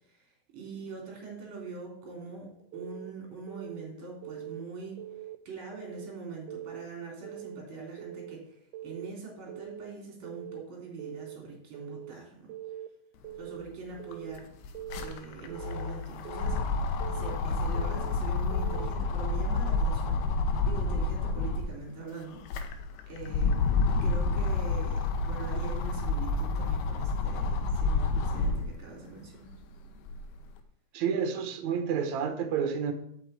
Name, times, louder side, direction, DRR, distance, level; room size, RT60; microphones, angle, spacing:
voice 1, 0.1-5.1 5.5-12.5 13.4-14.5 15.0-16.6 17.1-20.2 20.6-22.4 23.1-23.7 24.0-29.5, right 4 dB, 30° right, 0 dB, 3.6 m, -43 dB
Keyboard (musical) / Alarm, 2.7-3.1 3.5-3.9 4.2-4.6 5.0-5.4 5.7-6.1 6.5-6.9 7.2-7.6 8.0-8.4 8.7-9.1 9.5-9.9 10.2-10.6 11.0-11.4 11.7-12.1 12.5-12.9 13.2-13.6 14.0-14.4 14.7-15.1 15.5-15.9 16.3-16.6 17.0-17.4 17.8-18.1 18.5-18.9, right 12 dB, 80° right, 2.5 m, -42 dB
sound 1, 13.6-13.7 13.9-21.7 22.2-28.8 29.3-30.4, left 3 dB, 75° left, 2.9 m, -29 dB
voice 2, 30.9-32.9, right 7 dB, 65° right, 7 dB, 2.0 m, -29 dB
8.5 x 6.6 x 8.1 m, 0.71 s
omnidirectional pair, 4.6 m